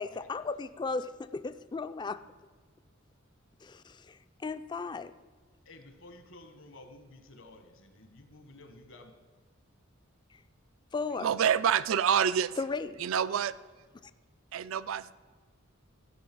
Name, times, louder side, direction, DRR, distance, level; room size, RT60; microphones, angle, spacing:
voice 1, 0.0-2.2 3.6-4.2 4.4-5.1 10.9-11.3 12.6-13.0, left 4 dB, 20° left, 13 dB, 0.3 m, -35 dB
voice 2, 5.6-9.1, left 2 dB, 70° left, 8 dB, 1.3 m, -52 dB
voice 3, 11.2-12.6 13.0-13.5 14.5-15.1, right 8 dB, 75° right, 17 dB, 0.4 m, -27 dB
15.5 x 5.6 x 6.0 m, 1.5 s
head